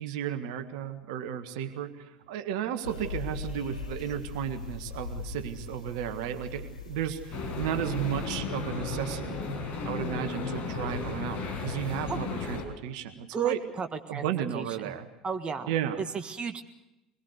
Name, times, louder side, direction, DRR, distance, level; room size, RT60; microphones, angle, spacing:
voice 1, 0.0-9.4 9.8-13.6 14.1-15.1 15.7-16.0, right 10 dB, 65° right, 8 dB, 1.7 m, -34 dB
sound 1, 2.8-8.3, left 5 dB, 90° left, 4.3 m, -40 dB
sound 2, 7.3-12.6, left 4 dB, 45° left, 5.4 m, -34 dB
voice 2, 13.3-14.2 14.5-15.0 15.2-16.6, right 6 dB, 30° right, 7 dB, 1.6 m, -33 dB
24.5 x 21.5 x 6.6 m, 0.96 s
figure-of-eight pair, 70°, 4 cm